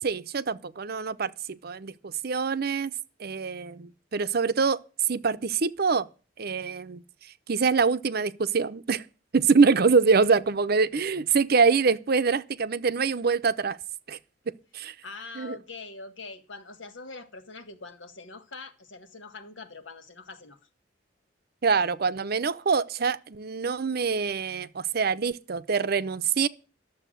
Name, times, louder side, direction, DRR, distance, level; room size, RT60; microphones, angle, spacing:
voice 1, 0.0-2.9 3.2-6.1 6.4-7.0 7.5-9.0 9.3-13.8 14.1-14.2 14.7-14.9 15.4-15.6 21.6-26.5, right 5 dB, 55° right, 0.7 m, -25 dB
voice 2, 15.0-20.6, left 3 dB, 90° left, 1.7 m, -43 dB
12.0 x 7.1 x 9.1 m
head